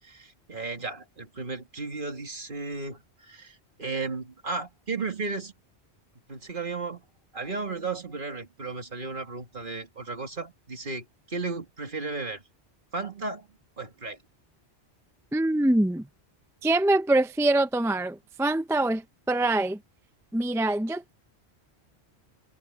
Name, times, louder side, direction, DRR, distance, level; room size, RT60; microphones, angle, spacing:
voice 1, 0.0-5.5 6.3-7.0 7.3-12.4 12.9-13.5 13.8-14.2, right 3 dB, 50° right, 2.3 m, -34 dB
voice 2, 15.3-16.1 16.6-19.0 19.3-19.8 20.3-21.2, right 2 dB, 5° right, 0.4 m, -24 dB
omnidirectional pair, 1.1 m